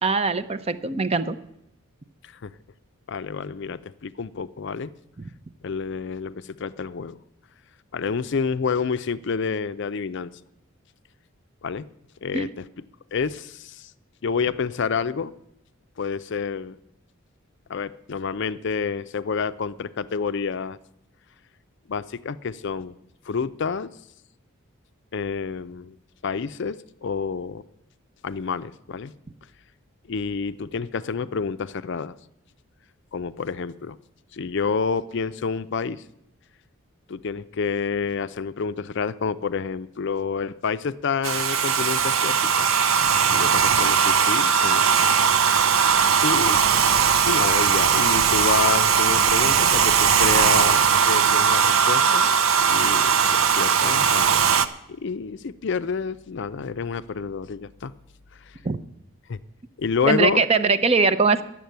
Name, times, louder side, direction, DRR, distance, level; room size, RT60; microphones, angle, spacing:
voice 1, 0.0-1.4 12.3-12.5 58.6-58.8 60.1-61.4, right 4 dB, 30° right, 12 dB, 0.5 m, -21 dB
voice 2, 3.1-4.9 5.6-7.2 7.9-10.3 11.6-11.9 12.2-12.6 13.1-13.9 14.2-15.3 16.0-16.8 17.7-20.8 21.9-22.9 23.3-23.9 25.1-26.0 26.2-27.6 28.2-29.1 30.1-32.2 33.1-34.0 34.3-36.0 37.1-42.7 43.3-44.9 46.2-46.6 47.2-52.3 52.7-54.5 54.9-57.9 58.5-58.6 59.3-59.4 59.8-60.4, left 5 dB, 55° left, 14 dB, 0.4 m, -28 dB
Domestic sounds home sounds, 41.2-54.7, right 7 dB, 70° right, 0.6 m, -19 dB
10.5 x 7.5 x 9.3 m, 0.79 s
head